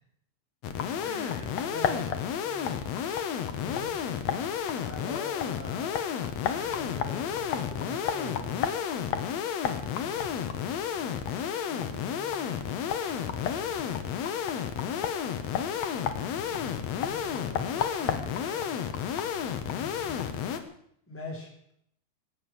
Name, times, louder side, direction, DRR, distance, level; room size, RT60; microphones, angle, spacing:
sound 1, 0.6-20.6, left 8 dB, 60° left, 1.9 m, -31 dB
voice 1, 1.0-2.1 2.4-2.9 3.6-3.9 4.7-6.0 6.5-8.6 9.6-9.9 11.7-12.6 16.9-18.7 21.1-21.7, left 1 dB, 5° left, -2 dB, 4.2 m, -43 dB
20.0 x 8.8 x 7.7 m, 0.71 s
omnidirectional pair, 4.6 m